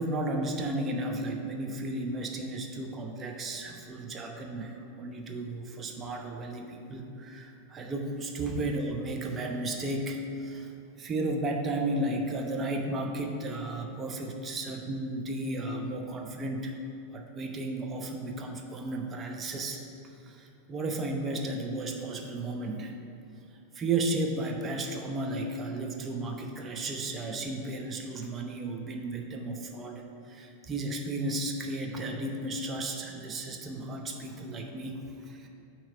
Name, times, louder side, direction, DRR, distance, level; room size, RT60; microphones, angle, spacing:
voice 1, 0.0-10.7 11.0-16.7 17.1-19.8 20.2-22.9 23.7-35.5, right 2 dB, 20° right, 2 dB, 0.7 m, -34 dB
8.7 x 3.1 x 5.5 m, 2.8 s
figure-of-eight pair, 90°, 0 cm